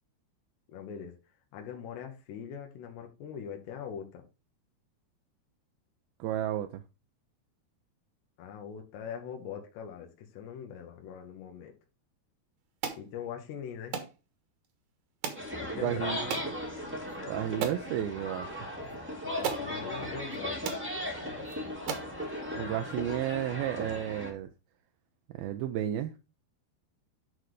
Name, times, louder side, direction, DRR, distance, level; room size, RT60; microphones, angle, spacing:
voice 1, 0.7-1.2 1.5-4.2 8.4-11.7 13.0-14.0 15.6-16.2 19.2-20.6, left 8 dB, 90° left, 3.3 m, -42 dB
voice 2, 6.2-6.8 15.8-16.4 17.3-18.5 22.6-24.5 25.3-26.1, right 12 dB, 80° right, 2.2 m, -32 dB
sound 1, 12.8-13.0 13.9-14.1 15.2-15.5 16.3-16.5 17.1-17.2 17.6-17.9 18.9-19.0 19.4-19.7 20.3-20.4 20.6-20.9 21.5-21.6 21.9-22.1, right 7 dB, 60° right, 2.1 m, -34 dB
sound 2, 15.3-24.3, left 1 dB, 10° right, 0.7 m, -37 dB
11.0 x 4.0 x 4.8 m
omnidirectional pair, 4.8 m